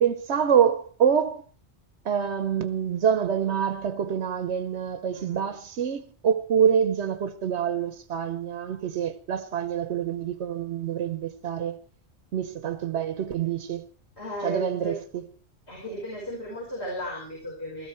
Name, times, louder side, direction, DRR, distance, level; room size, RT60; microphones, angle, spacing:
voice 1, 0.0-1.4 2.0-11.8 12.3-13.8 14.4-15.0, right 8 dB, 80° right, 1.1 m, -26 dB
voice 2, 5.1-5.6 14.2-15.0 15.7-17.9, equal, 70° left, 5.8 m, -35 dB
16.5 x 13.5 x 4.5 m
omnidirectional pair, 1.2 m